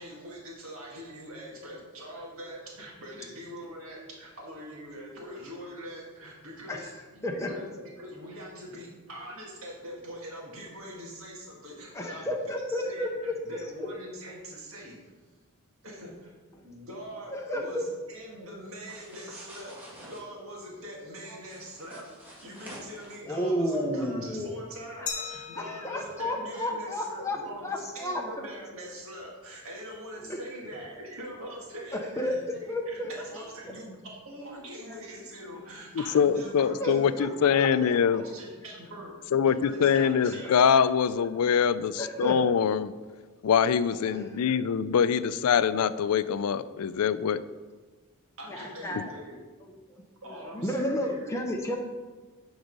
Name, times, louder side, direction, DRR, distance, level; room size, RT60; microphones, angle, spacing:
voice 1, 0.0-12.3 12.7-13.2 13.4-15.0 15.8-16.3 16.6-39.1 39.4-40.5 43.9-44.5 48.4-49.4 50.2-51.3, equal, 65° right, -3 dB, 1.8 m, -43 dB
voice 2, 11.9-13.6 17.3-17.8 23.3-24.5 25.6-27.4 27.6-28.2 30.3-30.4 30.7-30.8 32.2-32.3 32.7-33.1 36.8-37.3 37.6-37.7 40.3-40.4 42.0-42.4 48.5-49.1 49.7-49.8 50.5-51.8, left 1 dB, 15° left, 1 dB, 0.7 m, -31 dB
sound 1, 18.8-20.2 21.4-23.2, equal, 10° right, 1.8 m, -48 dB
Glass, 25.1-27.8, left 6 dB, 35° left, 1.2 m, -41 dB
voice 3, 36.1-38.2 39.3-42.9 43.4-47.4, left 7 dB, 85° left, 15 dB, 0.4 m, -24 dB
9.5 x 4.0 x 5.3 m, 1.3 s
head